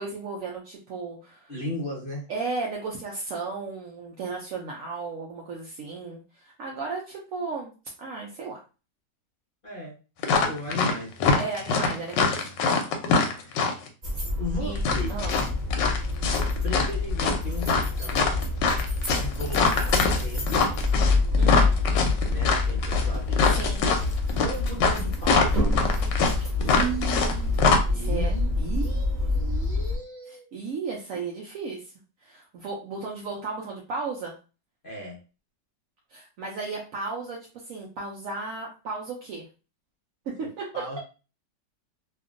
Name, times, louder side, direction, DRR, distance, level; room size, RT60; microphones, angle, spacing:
voice 1, 0.0-1.5 2.3-7.7 8.0-8.6 11.3-12.5 14.6-14.8 15.1-15.4 21.4-21.7 23.5-23.9 26.6-29.5 30.3-31.9 32.2-34.3 36.1-37.4 37.6-39.5 40.4-40.6, right 4 dB, 70° right, -2 dB, 0.8 m, -34 dB
voice 2, 1.5-2.3 9.6-9.9 10.3-11.2 13.4-13.6 14.4-15.1 16.6-18.3 19.1-20.6 22.2-23.6 24.4-25.6 27.9-30.5 34.8-35.2 40.4-40.5 40.7-41.0, left 1 dB, 40° left, -3 dB, 0.8 m, -36 dB
sound 1, 10.2-10.9 11.2-13.9 14.8-16.9 17.2-27.3 27.6-27.8, left 4 dB, 85° left, 1.3 m, -23 dB
sound 2, 14.0-30.0, left 3 dB, 30° right, 1.0 m, -26 dB
2.9 x 2.5 x 2.4 m, 0.33 s
omnidirectional pair, 1.9 m